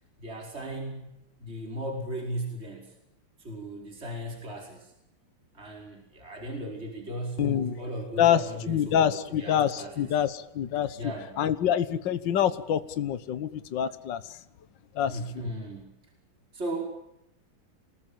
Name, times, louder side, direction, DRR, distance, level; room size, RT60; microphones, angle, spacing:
voice 1, 0.2-2.9 3.4-4.9 5.5-10.1 11.0-11.3 15.1-16.0 16.5-16.8, right 1 dB, 30° right, 1 dB, 5.6 m, -36 dB
voice 2, 7.4-7.8 8.2-8.4 8.7-11.0 11.4-14.4 15.0-15.5, left 10 dB, 70° left, 12 dB, 1.8 m, -26 dB
28.5 x 20.0 x 8.9 m, 0.83 s
omnidirectional pair, 2.1 m